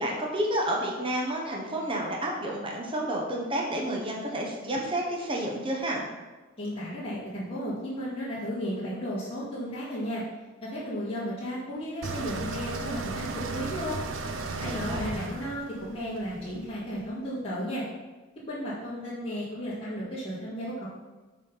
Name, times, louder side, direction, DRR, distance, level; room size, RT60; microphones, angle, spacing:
voice 1, 0.0-6.0 14.5-15.1, right 1 dB, 25° right, -2 dB, 0.9 m, -30 dB
voice 2, 6.6-10.2 10.6-14.0 14.6-17.8 18.5-20.9, equal, 25° left, -13 dB, 2.0 m, -34 dB
sound 1, 12.0-17.0, right 3 dB, 60° right, 0.6 m, -35 dB
6.9 x 4.2 x 5.7 m, 1.2 s
head